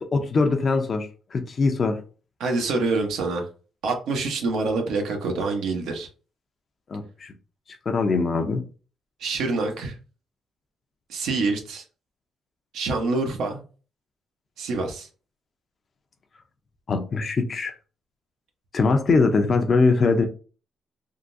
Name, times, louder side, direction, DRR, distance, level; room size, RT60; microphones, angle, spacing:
voice 1, 0.0-2.0 6.9-7.3 7.9-8.6 16.9-17.7 18.7-20.3, left 4 dB, 45° left, 0.5 m, -22 dB
voice 2, 2.4-3.4 3.8-6.1 9.2-10.0 11.1-11.8 12.7-13.6 14.6-15.1, right 3 dB, 80° right, 0.9 m, -26 dB
3.6 x 2.2 x 2.6 m
cardioid pair, 90°, 0 cm